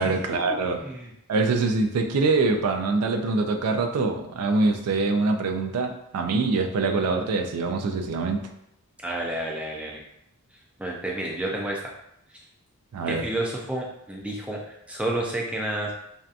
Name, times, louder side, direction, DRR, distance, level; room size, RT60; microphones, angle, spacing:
voice 1, 0.0-0.8 1.3-8.5 12.9-13.2, right 3 dB, 85° right, 5 dB, 0.4 m, -24 dB
voice 2, 0.8-1.1 9.0-10.0 10.5-11.8 12.3-12.4 13.1-15.9, right 1 dB, 5° right, -2 dB, 0.3 m, -30 dB
2.7 x 2.2 x 2.4 m, 0.79 s
head